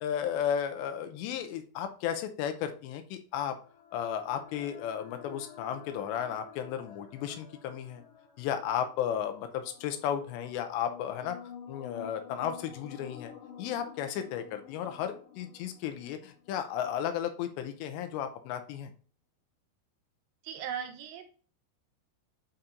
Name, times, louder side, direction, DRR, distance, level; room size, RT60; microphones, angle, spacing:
voice 1, 0.0-3.6 3.9-8.0 8.4-11.4 11.7-13.3 13.6-18.9, left 9 dB, 85° left, 7 dB, 3.0 m, -34 dB
sound 1, 3.5-17.1, left 8 dB, 65° left, 2.9 m, -50 dB
voice 2, 20.4-21.3, right 8 dB, 85° right, 7 dB, 3.1 m, -38 dB
11.5 x 4.4 x 2.6 m, 0.40 s
omnidirectional pair, 5.1 m